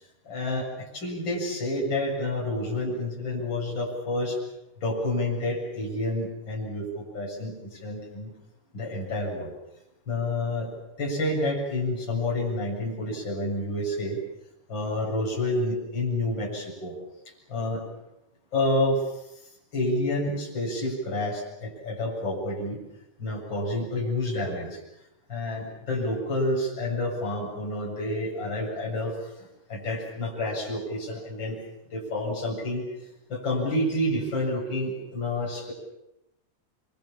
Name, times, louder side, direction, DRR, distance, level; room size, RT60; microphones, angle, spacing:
voice 1, 0.2-4.4 4.8-8.3 8.7-9.5 10.1-10.7 11.0-14.2 14.7-16.9 17.5-17.8 18.5-19.0 19.7-22.8 23.2-24.8 25.3-31.6 31.9-32.9 33.3-35.7, left 1 dB, 25° left, -4 dB, 8.3 m, -29 dB
27.5 x 24.5 x 7.4 m, 0.86 s
omnidirectional pair, 4.9 m